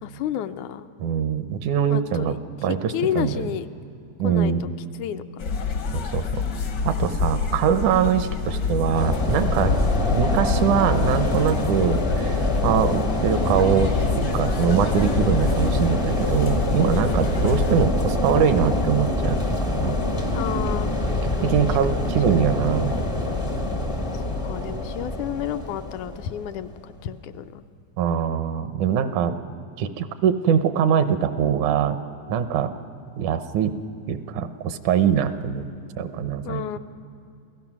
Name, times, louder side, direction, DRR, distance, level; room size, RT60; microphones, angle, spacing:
voice 1, 0.0-0.9 1.9-2.4 2.9-3.7 4.2-4.7 5.0-5.2 17.0-17.2 20.3-20.9 21.9-22.0 22.4-22.5 24.4-27.6 36.4-36.8, left 10 dB, 80° left, 9 dB, 2.0 m, -30 dB
voice 2, 1.0-2.4 2.6-3.5 4.2-4.6 5.9-6.4 6.8-9.8 10.1-20.0 21.2-23.0 28.0-29.4 29.8-32.0 32.3-32.7 33.2-33.8 34.1-35.7 36.0-36.8, right 8 dB, 80° right, 10 dB, 2.2 m, -23 dB
sound 1, 5.4-17.9, left 5 dB, 60° left, 1.1 m, -27 dB
sound 2, 8.9-26.9, left 1 dB, 45° left, 0.4 m, -25 dB
28.0 x 16.5 x 6.0 m, 2.6 s
omnidirectional pair, 3.5 m